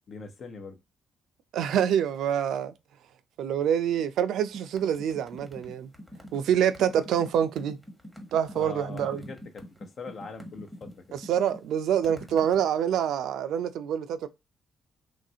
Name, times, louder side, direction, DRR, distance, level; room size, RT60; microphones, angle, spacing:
voice 1, 0.1-0.8 8.5-11.2, left 4 dB, 55° left, 0.7 m, -42 dB
voice 2, 1.5-2.7 3.4-5.9 6.3-7.8 8.3-9.2 11.1-14.3, right 9 dB, 80° right, 0.4 m, -26 dB
sound 1, 4.5-12.7, equal, 5° left, 1.0 m, -45 dB
3.1 x 2.5 x 2.7 m
cardioid pair, 90°, 0 cm